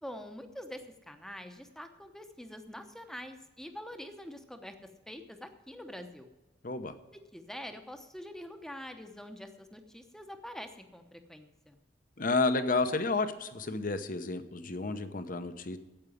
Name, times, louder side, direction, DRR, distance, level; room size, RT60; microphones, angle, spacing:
voice 1, 0.0-4.7 5.1-6.3 7.1-11.8, equal, 5° left, 7 dB, 0.9 m, -45 dB
voice 2, 6.6-6.9 12.2-15.8, left 3 dB, 45° left, 10 dB, 0.9 m, -31 dB
8.8 x 8.2 x 9.2 m, 1.1 s
head